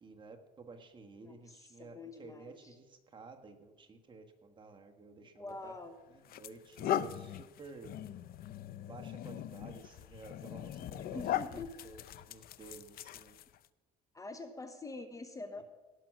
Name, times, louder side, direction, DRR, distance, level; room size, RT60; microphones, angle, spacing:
voice 1, 0.0-5.7 6.1-8.0 8.8-12.0 12.3-13.4 15.6-15.7, right 4 dB, 30° right, 4 dB, 1.5 m, -53 dB
voice 2, 1.2-2.8 5.2-5.9 11.0-11.7 14.1-15.6, left 3 dB, 20° left, 9 dB, 0.9 m, -46 dB
sound 1, 5.5-5.7 6.3-13.7, left 11 dB, 60° left, 0.5 m, -39 dB
17.0 x 6.1 x 6.2 m, 1.2 s
cardioid pair, 110°, 17 cm